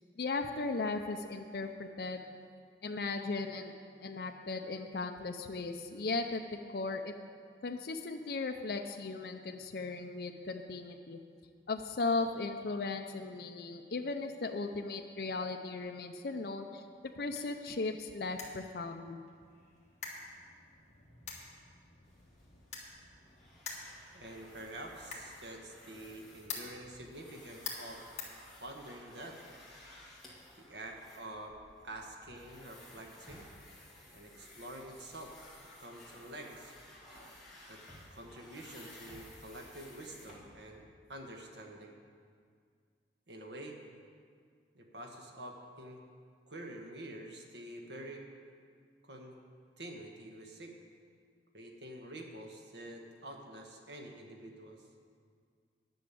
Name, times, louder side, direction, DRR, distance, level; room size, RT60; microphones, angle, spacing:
voice 1, 0.2-2.2 2.8-3.7 4.0-6.4 6.7-7.1 7.6-11.2 11.7-19.2, left 3 dB, 55° left, 4 dB, 0.5 m, -37 dB
sound 1, 16.8-29.1, left 5 dB, 40° left, 1.7 m, -49 dB
sound 2, 22.0-40.8, left 1 dB, ahead, 2.1 m, -56 dB
voice 2, 24.1-28.0 28.6-29.4 30.6-31.6 31.8-33.5 34.1-35.3 35.8-36.7 37.7-37.8 38.1-40.8 41.1-42.0 43.3-43.8 44.7-46.0 46.5-48.2 49.0-49.3 49.8-50.7 51.5-54.8, right 1 dB, 80° right, 2 dB, 1.4 m, -47 dB
10.5 x 6.3 x 8.4 m, 2.1 s
head